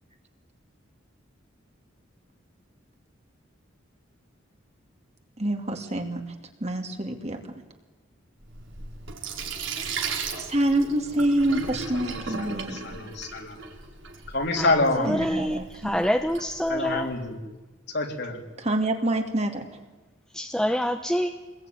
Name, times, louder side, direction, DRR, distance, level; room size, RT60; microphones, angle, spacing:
voice 1, 5.4-6.2 6.6-7.4 9.8-9.9 10.4-12.8 15.0-16.0 18.6-19.7, right 1 dB, 35° right, 4 dB, 2.6 m, -26 dB
Sink (filling or washing), 8.4-17.2, right 4 dB, 75° right, 4.3 m, -37 dB
voice 2, 11.9-13.6 14.3-15.1 16.7-17.4 17.9-18.4, left 2 dB, 60° left, 3 dB, 3.7 m, -27 dB
voice 3, 14.5-17.1 20.3-21.3, equal, 5° left, 5 dB, 1.0 m, -27 dB
27.5 x 21.0 x 9.5 m, 1.2 s
head